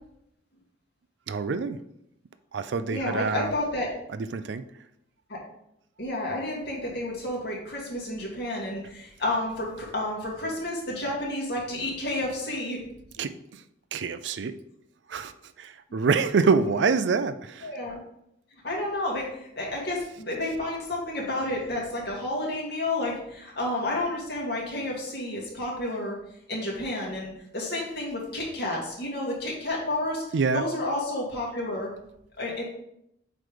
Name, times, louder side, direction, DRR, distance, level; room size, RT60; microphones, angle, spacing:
voice 1, 1.3-1.8 2.5-3.5 4.1-4.6 13.2-13.6 13.9-14.5 15.1-15.3 15.6-17.7 30.3-30.6, right 5 dB, 70° right, 12 dB, 0.4 m, -26 dB
voice 2, 2.9-3.9 5.3-5.4 6.0-12.8 17.6-18.0 18.6-26.2 26.5-30.2 30.5-31.9 32.4-32.6, left 1 dB, 60° left, -3 dB, 2.2 m, -30 dB
7.6 x 3.2 x 5.0 m, 0.78 s
head